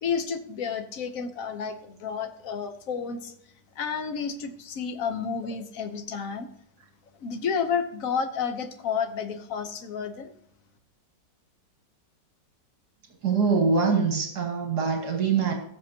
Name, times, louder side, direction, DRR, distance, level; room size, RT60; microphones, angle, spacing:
voice 1, 0.0-3.3 3.8-6.5 7.2-10.3, left 6 dB, 55° left, 8 dB, 1.3 m, -31 dB
voice 2, 13.2-15.5, right 5 dB, 60° right, 3 dB, 2.2 m, -24 dB
17.5 x 7.0 x 2.9 m, 0.67 s
omnidirectional pair, 2.0 m